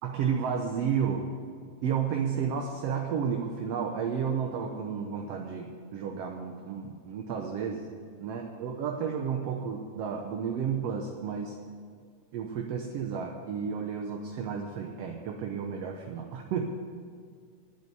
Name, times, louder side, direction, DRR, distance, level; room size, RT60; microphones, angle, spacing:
voice 1, 0.0-1.3 1.8-7.9 8.2-11.6 12.3-16.6, right 7 dB, 65° right, 2 dB, 1.7 m, -32 dB
10.0 x 9.2 x 9.5 m, 2.1 s
omnidirectional pair, 3.4 m